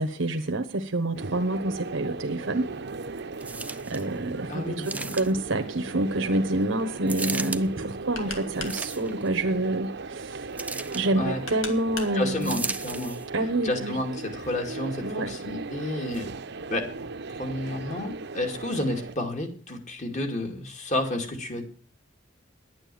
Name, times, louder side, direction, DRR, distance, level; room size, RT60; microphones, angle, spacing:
voice 1, 0.0-2.6 3.9-10.5 10.9-12.6 13.3-14.0 15.0-15.3, right 1 dB, 80° right, 1.1 m, -27 dB
sound 1, 1.1-19.1, right 3 dB, 60° right, 0.8 m, -37 dB
sound 2, 3.4-4.1 4.8-5.5 7.1-7.6 8.5-9.3 10.6-11.1 12.4-13.3 14.0-14.1, right 3 dB, 10° right, 0.5 m, -35 dB
voice 2, 4.5-5.2 11.1-11.4 12.1-13.2 13.6-16.3 16.7-16.9 17.3-21.6, left 1 dB, 40° left, 2.6 m, -31 dB
sound 3, 6.5-13.2, left 5 dB, 80° left, 2.2 m, -43 dB
11.0 x 9.0 x 7.7 m
head